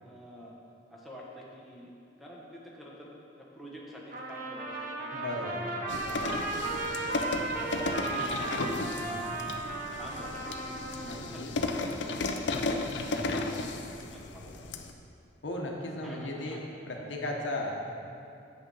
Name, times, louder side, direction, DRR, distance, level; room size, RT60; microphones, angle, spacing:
voice 1, 0.0-0.5 0.9-3.1 3.4-5.6 6.0-6.6 7.0-8.5 8.9-10.7 11.1-12.7 14.1-14.6 16.0-16.6, equal, ahead, -5 dB, 1.1 m, -48 dB
Trumpet, 4.1-11.2, right 2 dB, 50° right, 0.9 m, -35 dB
voice 2, 5.1-5.7 9.0-9.4 11.0-11.5 13.0-13.3 15.4-16.6 16.9-17.7, left 1 dB, 85° left, 0 dB, 1.1 m, -36 dB
sound 1, 5.9-14.9, left 2 dB, 70° left, 0.6 m, -34 dB
7.8 x 6.2 x 5.5 m, 2.6 s
head